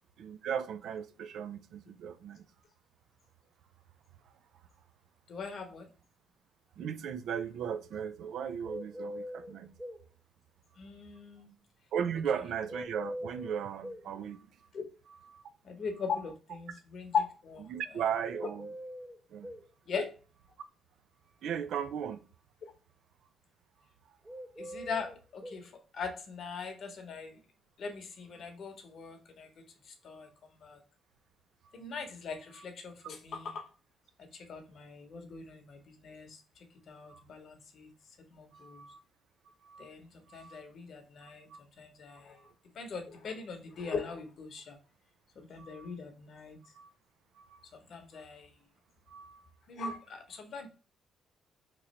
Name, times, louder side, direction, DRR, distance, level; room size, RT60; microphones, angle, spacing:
voice 1, 0.2-2.5 6.8-9.7 11.9-14.5 15.1-15.4 17.7-18.7 19.3-19.5 21.4-22.3 24.6-24.9 32.6-32.7 37.1-37.2 38.5-39.0 39.6-39.9 40.3-40.6 41.5-41.6 42.1-42.5 45.6-45.9 46.7-46.9 47.4-47.6 48.1-48.2 49.1-49.4, right 8 dB, 75° right, 0.4 m, -37 dB
voice 2, 5.3-5.9 10.8-11.5 14.7-14.8 15.6-17.7 19.9-20.1 24.6-27.4 27.8-30.3 30.6-30.8 31.7-33.6 34.3-36.4 36.9-37.9 38.3-38.8 39.8-41.5 41.8-42.4 42.7-44.8 45.4-46.6 47.7-48.5 49.7-50.7, left 5 dB, 60° left, 0.9 m, -40 dB
sound 1, 8.6-10.0 12.7-14.1 18.3-19.7 24.2-25.6, equal, 15° right, 0.4 m, -42 dB
3.0 x 2.5 x 4.2 m
cardioid pair, 90°, 0 cm